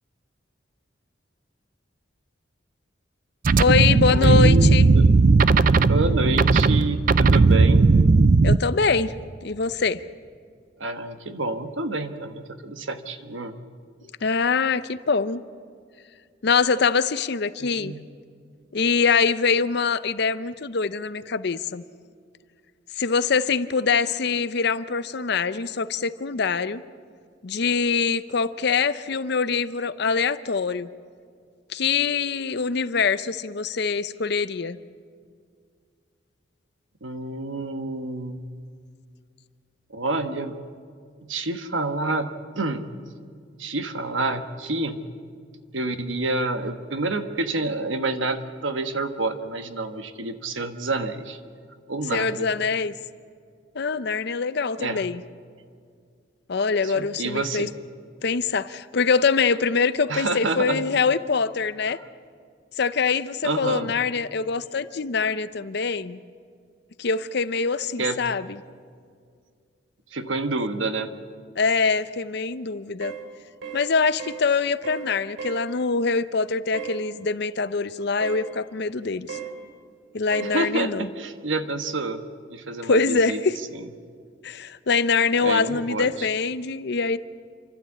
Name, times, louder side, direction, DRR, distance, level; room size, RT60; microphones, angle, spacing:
sound 1, 3.4-8.6, right 3 dB, 45° right, 0.4 m, -16 dB
voice 1, 3.6-4.9 8.4-9.1 9.4-10.0 14.2-15.4 16.4-17.9 18.7-21.8 23.0-26.8 27.4-30.9 31.7-34.8 52.1-52.9 53.7-55.2 56.5-57.7 58.2-62.0 62.8-66.2 67.0-68.6 71.6-73.1 73.7-79.4 80.1-81.1 82.8-83.6 84.4-87.2, left 5 dB, 60° left, 14 dB, 0.6 m, -24 dB
voice 2, 4.1-5.1 5.7-7.8 10.8-13.5 17.6-18.0 37.0-38.5 39.9-40.6 41.2-42.9 43.6-45.0 45.7-51.4 51.9-52.5 54.8-55.0 56.8-57.7 60.1-61.0 61.9-62.0 63.4-63.9 68.0-68.2 70.1-71.1 80.4-82.2 82.5-83.4 83.7-83.8 85.4-86.3, right 2 dB, 80° right, 8 dB, 1.3 m, -28 dB
sound 2, 73.0-73.2 73.6-73.9 74.2-74.4 74.8-75.1 75.4-75.6 76.7-77.0 78.2-78.5 79.3-79.5 80.3-80.6, right 8 dB, 65° right, 2.9 m, -35 dB
28.5 x 12.5 x 8.5 m, 2.2 s
head